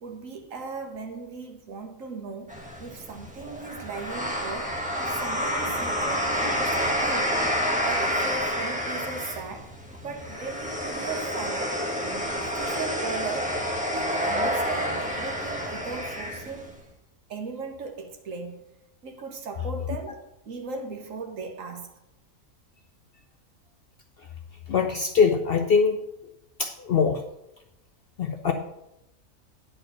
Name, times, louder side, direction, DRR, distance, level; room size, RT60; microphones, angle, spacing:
voice 1, 0.0-7.4 7.8-9.7 10.0-11.7 12.0-13.6 13.9-16.7 17.3-18.6 19.0-21.9, right 4 dB, 65° right, 1.5 m, -37 dB
sound 1, 2.5-16.8, equal, 5° right, 1.1 m, -29 dB
voice 2, 24.7-26.0 26.6-27.2 28.2-28.5, left 5 dB, 55° left, 0.7 m, -22 dB
9.7 x 4.4 x 6.5 m
omnidirectional pair, 1.5 m